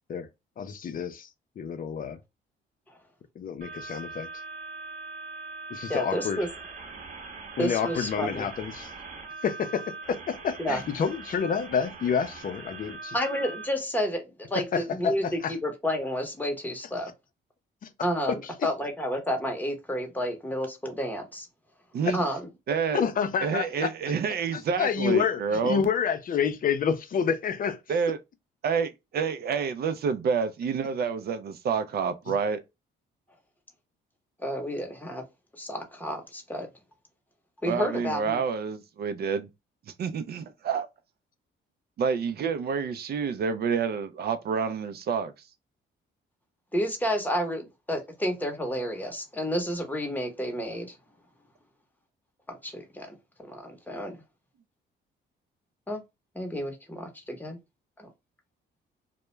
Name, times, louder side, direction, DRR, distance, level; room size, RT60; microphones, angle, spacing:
voice 1, 0.6-1.3 1.6-2.2 3.4-4.3 5.7-6.4 7.6-8.9 9.4-13.2 14.7-15.5 17.8-17.9 18.3-18.4 22.1-22.2 22.9-23.9 24.5-27.8, left 7 dB, 45° left, 0.5 m, -28 dB
sound 1, 3.6-13.7, right 3 dB, 40° right, 0.9 m, -41 dB
voice 2, 5.9-6.5 7.6-8.5 10.6-10.8 13.1-17.1 18.0-21.5 22.1-22.5 34.4-35.2 35.6-36.7 37.6-38.4 46.7-51.0 52.5-53.1 53.4-54.2 55.9-56.0 56.3-57.6 58.0-58.1, equal, 10° left, 0.8 m, -30 dB
voice 3, 22.7-23.0 23.4-25.8 27.9-28.2 28.6-32.6 37.7-39.5 40.0-40.9 42.0-45.3, right 6 dB, 55° right, 0.4 m, -28 dB
2.2 x 2.1 x 3.0 m
cardioid pair, 90°, 20 cm